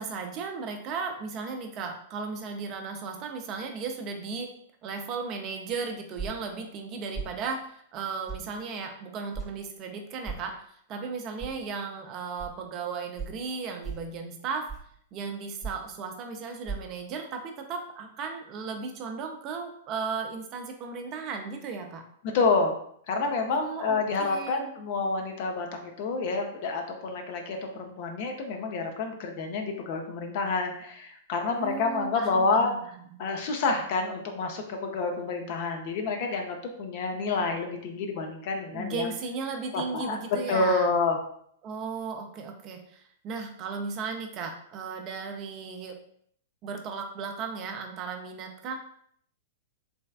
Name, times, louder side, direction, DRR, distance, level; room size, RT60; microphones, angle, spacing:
voice 1, 0.0-4.5 4.8-10.5 10.9-14.7 15.1-22.0 23.5-24.7 31.5-32.8 33.1-33.2 38.6-41.0 41.6-46.0 46.6-48.8, right 5 dB, 35° right, 4 dB, 0.5 m, -35 dB
sound 1, 6.2-6.5 7.1-7.4 8.3-8.5 9.3-9.5 10.2-10.5 11.4-11.5 12.4-12.5 13.2-13.4 13.8-14.1 14.7-15.0 15.6-15.9 16.6-16.8, right 5 dB, 5° left, 0.7 m, -36 dB
voice 2, 22.3-22.7 23.1-32.9 33.2-39.1 39.7-41.2, left 3 dB, 50° left, 3 dB, 0.6 m, -28 dB
3.4 x 3.1 x 2.3 m, 0.65 s
figure-of-eight pair, 100°, 0 cm